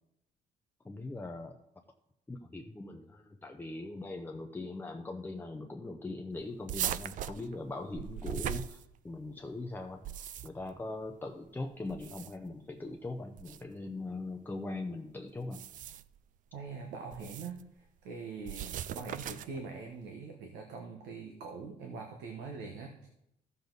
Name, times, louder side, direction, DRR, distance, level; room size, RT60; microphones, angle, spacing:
voice 1, 0.8-1.6 2.3-15.6, left 2 dB, 10° left, 3 dB, 0.7 m, -41 dB
sound 1, 6.7-9.3 9.9-10.7 11.9-12.5 13.4-13.6 15.4-16.2 17.1-17.6 18.4-19.6, right 10 dB, 50° right, 0.4 m, -39 dB
voice 2, 16.5-23.1, right 4 dB, 85° right, 3 dB, 1.3 m, -43 dB
13.5 x 6.9 x 4.0 m, 0.83 s
cardioid pair, 110°, 17 cm